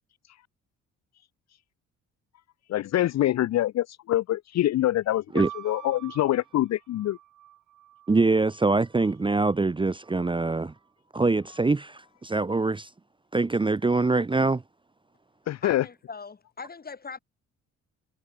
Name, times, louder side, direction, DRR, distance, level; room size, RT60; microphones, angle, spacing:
voice 1, 2.7-7.2 15.5-15.9, left 14 dB, 60° left, 0.6 m, -25 dB
sound 1, 5.3-9.2 10.0-10.7, right 13 dB, 75° right, 3.5 m, -46 dB
voice 2, 8.1-10.7 11.1-12.9 13.3-14.6, right 3 dB, 15° right, 0.9 m, -24 dB
voice 3, 15.6-17.2, left 5 dB, 30° left, 2.9 m, -40 dB
cardioid pair, 90°, 30 cm